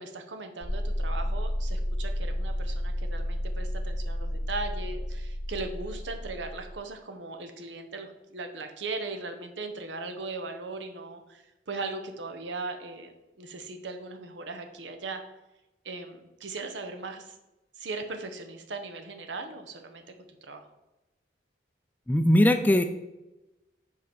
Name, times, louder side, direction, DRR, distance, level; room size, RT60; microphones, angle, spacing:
voice 1, 0.0-15.2 15.8-17.4 17.8-20.0 20.4-20.6, right 3 dB, 85° right, 6 dB, 0.9 m, -38 dB
sound 1, 0.6-6.7, equal, 60° right, 1.5 m, -31 dB
voice 2, 22.1-22.8, left 1 dB, 10° left, 8 dB, 0.3 m, -20 dB
5.6 x 4.7 x 5.2 m, 0.99 s
head